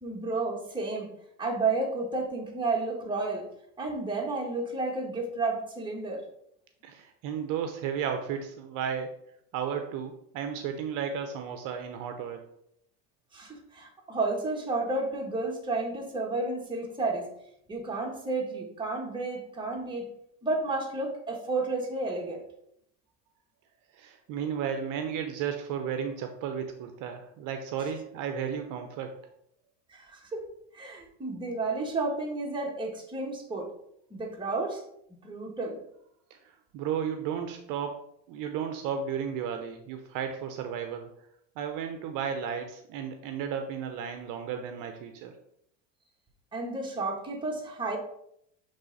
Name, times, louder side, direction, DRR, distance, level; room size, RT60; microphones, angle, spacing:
voice 1, 0.0-1.1 1.4-3.5 3.8-6.2 13.3-17.3 17.7-20.1 20.4-22.4 29.9-30.5 30.7-33.7 34.1-34.8 35.2-35.8 46.5-48.0, right 3 dB, 10° right, -1 dB, 1.6 m, -31 dB
voice 2, 6.8-9.1 9.5-12.4 23.9-29.1 36.3-38.0 38.3-41.1 41.6-45.3, right 7 dB, 55° right, 6 dB, 0.7 m, -34 dB
6.9 x 3.4 x 4.0 m, 0.74 s
supercardioid pair, 105°, 38 cm